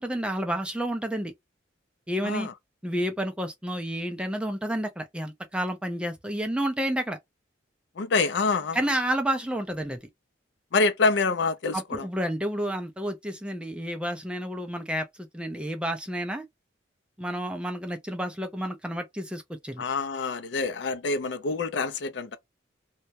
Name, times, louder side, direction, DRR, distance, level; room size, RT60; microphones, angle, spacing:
voice 1, 0.0-1.3 2.1-2.5 2.8-7.2 8.7-10.0 11.7-16.4 17.2-19.8, equal, 5° right, 0.3 m, -30 dB
voice 2, 8.0-8.8 10.7-12.1 19.8-22.4, left 4 dB, 60° left, 0.4 m, -26 dB
2.2 x 2.0 x 2.7 m
head